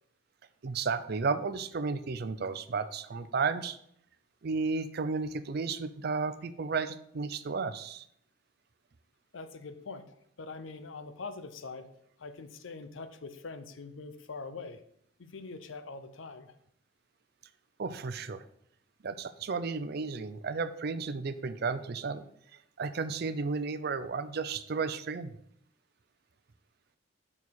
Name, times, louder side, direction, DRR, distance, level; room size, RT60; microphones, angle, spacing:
voice 1, 0.6-3.8 4.4-8.0 17.8-18.4 19.0-22.3 22.8-25.3, right 4 dB, 55° right, 12 dB, 0.5 m, -33 dB
voice 2, 9.3-11.9 12.2-14.8 15.2-16.5, left 4 dB, 90° left, 10 dB, 0.7 m, -43 dB
5.4 x 4.7 x 6.2 m, 0.70 s
head